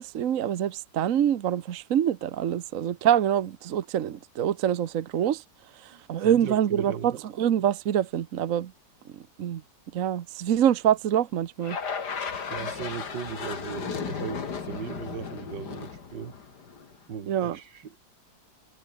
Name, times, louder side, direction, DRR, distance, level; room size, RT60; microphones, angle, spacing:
voice 1, 0.0-5.4 5.8-8.7 9.1-9.6 9.9-11.8 17.3-17.6, right 10 dB, 55° right, 1.2 m, -25 dB
voice 2, 5.9-7.2 12.4-16.4 17.1-18.0, right 7 dB, 80° right, 2.4 m, -38 dB
sound 1, 11.6-17.0, left 6 dB, 65° left, 2.7 m, -35 dB
omnidirectional pair, 1.9 m